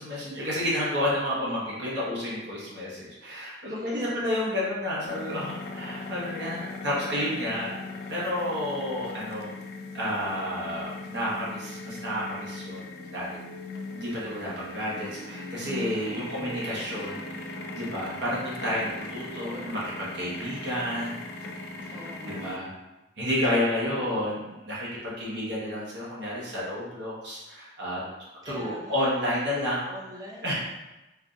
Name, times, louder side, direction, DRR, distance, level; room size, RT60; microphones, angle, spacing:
voice 1, 0.0-7.8 8.1-9.5 9.9-13.3 13.9-21.2 21.8-22.7 23.2-28.0 28.4-29.9 30.4-30.5, left 1 dB, 75° right, -6 dB, 1.0 m, -31 dB
voice 2, 3.7-4.4 15.9-16.6 19.3-19.9 21.9-22.5 23.8-24.1 28.4-29.0 29.9-30.5, left 1 dB, 20° right, -2 dB, 0.4 m, -44 dB
sound 1, 5.0-22.6, left 2 dB, 55° left, 0.3 m, -39 dB
4.6 x 2.5 x 2.3 m, 1.0 s
head